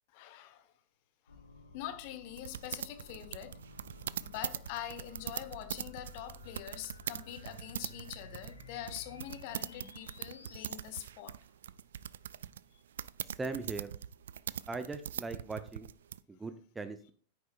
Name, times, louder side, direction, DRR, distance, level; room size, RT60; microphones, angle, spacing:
voice 1, 0.1-0.7 1.3-1.4 1.7-3.6 4.2-11.4, left 11 dB, 45° left, 1.1 m, -44 dB
sound 1, 1.3-10.8, left 2 dB, 80° left, 1.3 m, -54 dB
sound 2, 2.4-16.2, right 9 dB, 65° right, 0.3 m, -42 dB
voice 2, 13.4-13.9 14.7-15.9 16.3-17.1, right 3 dB, 10° right, 0.7 m, -39 dB
9.8 x 9.5 x 2.4 m
figure-of-eight pair, 90°, 0 cm